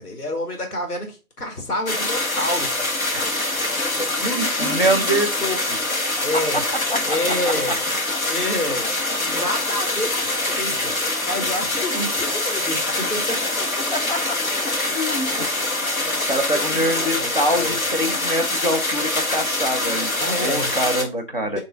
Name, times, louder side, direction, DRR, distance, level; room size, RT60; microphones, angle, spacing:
voice 1, 0.0-2.9 3.9-6.7 7.0-7.9 8.2-13.4 15.1-15.5 16.0-17.8 20.2-20.8 21.4-21.6, left 1 dB, 80° left, 2 dB, 2.1 m, -29 dB
sound 1, 1.9-21.0, left 2 dB, 60° left, 1.6 m, -24 dB
voice 2, 4.0-5.3 7.1-7.2 8.1-8.3 13.9-14.4 14.6-15.5 16.3-20.1 20.4-21.6, equal, 35° left, 2 dB, 0.6 m, -24 dB
4.7 x 3.1 x 3.5 m, 0.30 s
figure-of-eight pair, 170°, 46 cm